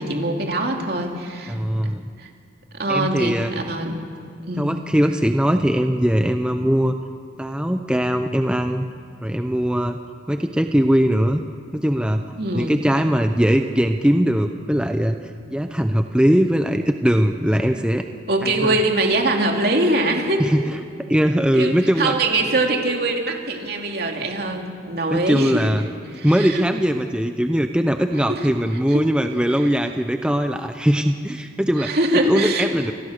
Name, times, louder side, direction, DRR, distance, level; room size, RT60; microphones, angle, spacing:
voice 1, 0.0-1.6 1.8-1.9 2.2-2.3 2.7-4.0 4.5-4.8 12.4-12.8 18.3-20.4 21.5-25.7 26.1-26.7 28.3-28.5 28.9-29.0 31.8-32.7, right 2 dB, 60° right, 2 dB, 2.8 m, -23 dB
voice 2, 1.5-2.0 2.9-3.5 4.6-6.9 7.4-8.9 9.2-10.0 10.3-11.4 11.7-15.2 15.5-18.0 18.6-18.7 20.4-20.8 21.1-22.1 25.1-25.8 26.2-31.9 32.2-32.9, equal, 5° right, 6 dB, 0.7 m, -20 dB
26.5 x 20.5 x 6.6 m, 2.3 s
head